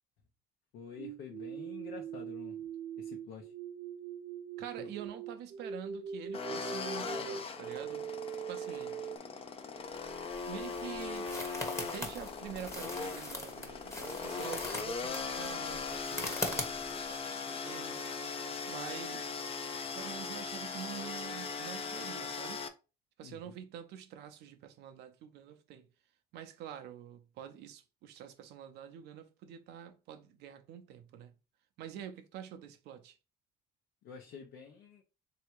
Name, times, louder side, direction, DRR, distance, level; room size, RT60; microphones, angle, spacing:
voice 1, 0.7-2.6 3.0-3.5 4.8-4.9 23.2-23.6 34.0-35.0, left 6 dB, 75° left, 0.9 m, -48 dB
sound 1, 1.0-9.2, right 7 dB, 45° right, 0.4 m, -41 dB
voice 2, 4.6-8.1 8.5-9.0 10.5-11.3 11.8-18.0 18.7-19.3 19.9-22.6 23.2-25.9 26.3-31.3 31.8-33.1, right 9 dB, 80° right, 0.7 m, -46 dB
sound 2, 6.3-22.7, left 5 dB, 35° left, 0.6 m, -39 dB
sound 3, 10.0-17.2, left 2 dB, 15° left, 1.1 m, -41 dB
3.5 x 2.9 x 4.5 m
cardioid pair, 110°, 17 cm